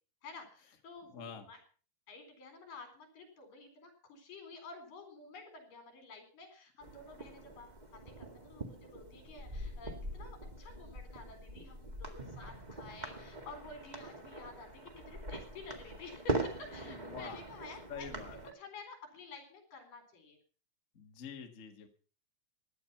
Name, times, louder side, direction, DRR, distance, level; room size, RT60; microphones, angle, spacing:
voice 1, 0.2-1.6 2.1-18.1 18.6-20.4, left 3 dB, 65° left, 6 dB, 5.5 m, -51 dB
voice 2, 1.1-1.5 16.8-17.4 17.9-18.5 20.9-21.9, left 6 dB, 35° left, 4 dB, 1.2 m, -46 dB
sound 1, 6.8-18.5, right 1 dB, 25° right, 0.8 m, -42 dB
16.5 x 11.0 x 5.8 m, 0.40 s
omnidirectional pair, 4.2 m